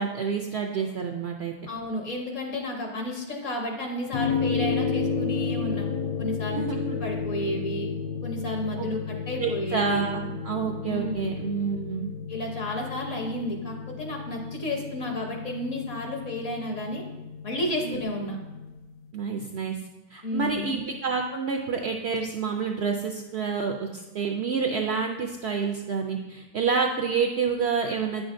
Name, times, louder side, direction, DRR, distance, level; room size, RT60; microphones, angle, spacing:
voice 1, 0.0-1.5 6.5-6.9 8.8-8.9 9.4-12.1 17.8-18.3 19.1-19.8 20.1-28.3, right 5 dB, 70° right, 3 dB, 0.6 m, -28 dB
voice 2, 1.7-5.9 6.2-7.9 8.2-10.1 10.8-11.3 12.3-17.0 17.4-18.4 20.2-20.8, left 1 dB, 60° left, 1 dB, 1.3 m, -32 dB
sound 1, 4.1-18.7, left 5 dB, 75° left, 1.1 m, -32 dB
9.0 x 6.1 x 2.6 m, 1.1 s
omnidirectional pair, 1.6 m